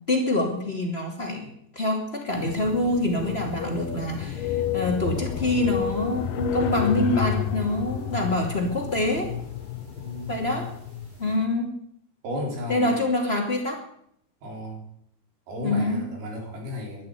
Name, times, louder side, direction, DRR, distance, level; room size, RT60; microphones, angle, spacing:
voice 1, 0.1-9.3 10.3-10.7 11.2-11.7 12.7-13.8 15.6-16.0, left 1 dB, 20° left, 1 dB, 2.5 m, -26 dB
sound 1, 2.3-11.1, left 10 dB, 75° left, 2.0 m, -32 dB
sound 2, 2.4-2.5 2.8-4.1 4.3-5.2 5.5-7.7 8.1-8.2 8.9-9.2 10.2-10.3 10.7-10.8, left 8 dB, 30° right, 7.6 m, -32 dB
voice 2, 10.0-10.4 11.3-11.4 12.2-13.0 14.4-14.8 15.5-17.1, left 1 dB, 85° right, 1 dB, 6.0 m, -34 dB
12.0 x 11.5 x 9.9 m, 0.69 s
omnidirectional pair, 4.4 m